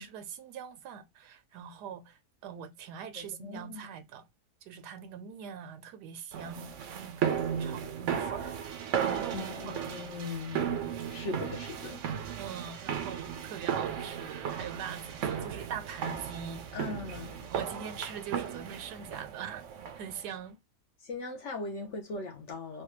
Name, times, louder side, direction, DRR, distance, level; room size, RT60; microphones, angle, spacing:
voice 1, 0.0-4.3 4.6-8.6 9.0-9.8 11.3-11.5 12.4-16.9 17.5-19.6 19.9-20.6, right 8 dB, 90° right, 1.2 m, -42 dB
voice 2, 3.1-3.9 9.3-12.0 16.7-17.4 21.0-22.8, left 3 dB, 60° left, 0.8 m, -40 dB
sound 1, 6.3-20.2, right 8 dB, 70° right, 0.7 m, -35 dB
3.2 x 2.2 x 2.9 m
omnidirectional pair, 1.7 m